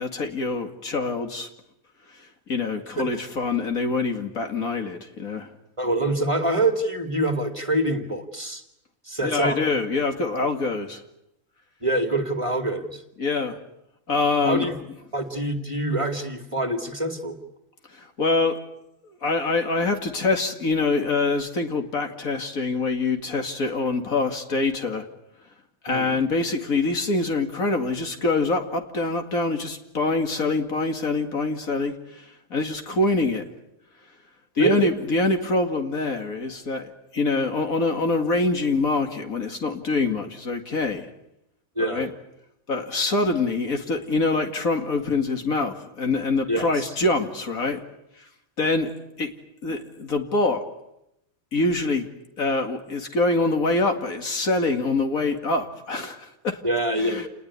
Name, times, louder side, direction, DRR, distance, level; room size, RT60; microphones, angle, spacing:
voice 1, 0.0-1.5 2.1-5.5 9.2-11.0 13.2-13.6 14.1-14.7 17.9-18.6 19.0-25.1 25.8-33.4 34.6-41.1 41.8-42.1 42.7-47.8 48.2-48.3 48.6-48.9 49.2-49.3 49.6-50.6 51.5-52.1 52.4-56.6 57.0-57.3, left 3 dB, 80° left, 5 dB, 2.8 m, -25 dB
voice 2, 5.8-8.6 9.0-9.6 11.8-13.0 14.4-14.7 15.1-17.4 25.9-26.2 34.6-34.8 41.8-42.1 46.5-46.7 56.6-57.2, right 1 dB, 20° right, 6 dB, 2.4 m, -25 dB
28.5 x 20.0 x 9.7 m, 0.84 s
omnidirectional pair, 1.4 m